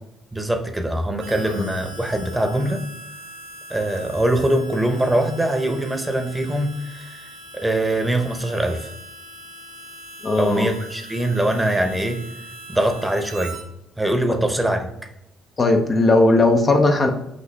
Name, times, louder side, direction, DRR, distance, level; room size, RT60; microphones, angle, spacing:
voice 1, 0.3-2.8 3.7-7.2 7.5-8.9 10.4-12.2 12.7-13.6 14.0-14.9, right 1 dB, 10° right, 5 dB, 0.9 m, -22 dB
Harmonica, 1.2-13.6, equal, 85° right, 1.0 m, -41 dB
voice 2, 10.2-10.7 14.3-14.4 15.6-17.1, left 2 dB, 35° left, 4 dB, 0.7 m, -17 dB
5.8 x 2.6 x 3.3 m, 0.83 s
hypercardioid pair, 55°, 0 cm